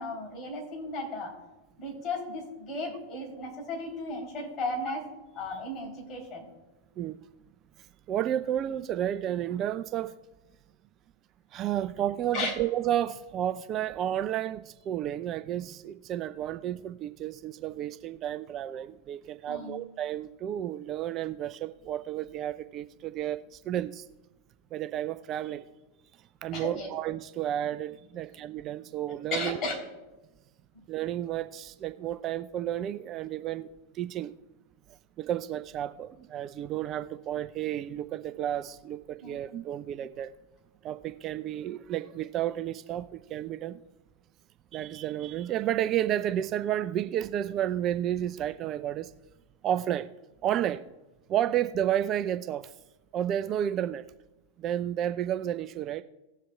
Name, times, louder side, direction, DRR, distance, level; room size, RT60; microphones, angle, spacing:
voice 1, 0.0-1.4 1.8-5.0 5.3-6.5 12.3-12.5 19.5-19.8 26.5-26.9 29.3-29.8 30.7-30.8 39.2-39.4, left 2 dB, 30° left, -1 dB, 3.2 m, -35 dB
voice 2, 7.8-10.1 11.5-24.1 24.7-25.7 26.4-29.6 30.9-33.7 33.9-34.3 35.2-40.3 40.8-43.8 44.7-49.1 49.6-50.1 50.4-50.8 51.3-52.7 53.1-54.0 54.6-56.0, right 11 dB, 35° right, 12 dB, 0.3 m, -31 dB
18.5 x 7.3 x 2.3 m, 1.1 s
figure-of-eight pair, 90°, 0 cm